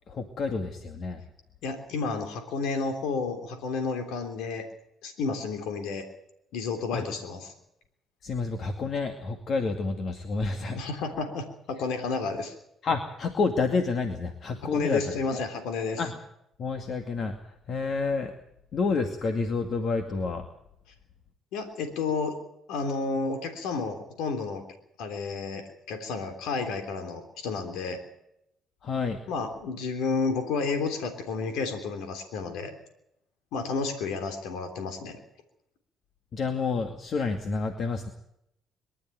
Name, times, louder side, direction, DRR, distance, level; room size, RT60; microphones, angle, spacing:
voice 1, 0.1-1.2 6.9-7.0 8.2-10.8 12.8-15.0 15.3-15.4 16.0-16.1 16.6-18.3 18.7-20.4 28.8-29.2 36.3-38.1, left 4 dB, 55° left, 6 dB, 2.3 m, -29 dB
voice 2, 1.6-4.6 5.0-6.0 6.5-7.5 10.7-12.5 14.7-16.0 21.5-22.3 22.7-24.6 25.0-28.0 29.3-32.7 33.5-35.2, left 4 dB, 85° left, 6 dB, 3.4 m, -31 dB
23.5 x 12.5 x 9.3 m, 0.78 s
cardioid pair, 90°, 0 cm